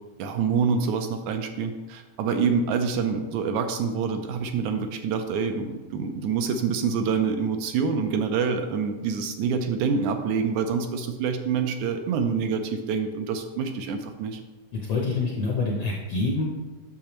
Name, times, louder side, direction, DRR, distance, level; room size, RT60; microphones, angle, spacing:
voice 1, 0.2-14.4, right 5 dB, 80° right, 6 dB, 1.8 m, -26 dB
voice 2, 14.7-16.4, left 3 dB, 70° left, -2 dB, 1.3 m, -26 dB
8.5 x 6.6 x 3.0 m, 1.2 s
omnidirectional pair, 3.5 m